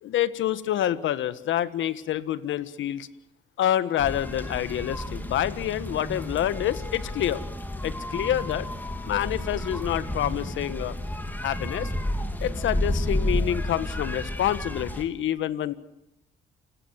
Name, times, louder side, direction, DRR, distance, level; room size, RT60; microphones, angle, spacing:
voice 1, 0.0-3.1 3.6-7.4 7.8-8.7 9.0-10.9 11.4-11.9 12.4-15.7, left 11 dB, 80° left, 14 dB, 1.5 m, -27 dB
sound 1, 4.0-15.0, left 1 dB, 10° left, 3.5 m, -31 dB
29.0 x 18.5 x 7.6 m, 0.87 s
cardioid pair, 90°, 20 cm